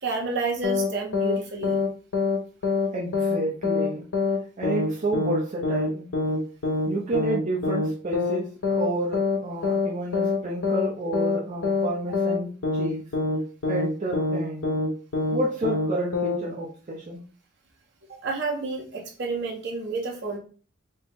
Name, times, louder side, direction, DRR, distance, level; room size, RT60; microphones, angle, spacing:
voice 1, 0.0-1.8 18.2-20.4, right 3 dB, 60° right, -1 dB, 1.0 m, -30 dB
sound 1, 0.6-0.9 1.1-1.4 1.6-2.4 2.6-2.9 3.1-3.4 3.6-3.9 4.1-4.4 4.6-4.9 5.1-5.4 5.6-5.9 6.1-6.4 6.6-6.9 7.1-7.4 7.6-7.9 8.1-8.4 8.6-8.9 9.1-9.4 9.6-9.9 10.1-10.4 10.6-10.9 11.1-11.4 11.6-11.9 12.1-12.4 12.6-12.9 13.1-13.4 13.6-13.9 14.1-14.4 14.6-14.9 15.1-15.4 15.6-15.9 16.1-16.4, left 3 dB, 70° left, 0.6 m, -24 dB
voice 2, 2.9-4.1 4.6-6.1 6.9-13.1 13.7-14.8 15.3-17.2, right 1 dB, 40° right, -3 dB, 0.6 m, -30 dB
4.2 x 2.0 x 3.5 m, 0.40 s
head